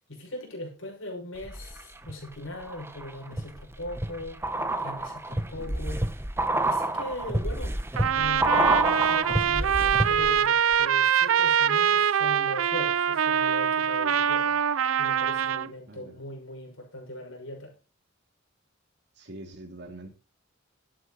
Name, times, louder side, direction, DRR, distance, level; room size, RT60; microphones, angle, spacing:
voice 1, 0.0-4.4 4.8-6.1 6.6-7.9 8.1-8.7 8.9-14.6 15.0-17.7, left 1 dB, 80° left, 6.3 m, -40 dB
sound 1, 1.4-2.1 2.6-10.5 10.7-10.8, right 1 dB, 10° right, 1.1 m, -28 dB
Trumpet, 8.0-15.7, right 8 dB, 85° right, 0.5 m, -24 dB
voice 2, 15.9-16.2 19.1-20.1, right 1 dB, 60° right, 2.9 m, -44 dB
13.0 x 10.0 x 4.2 m
head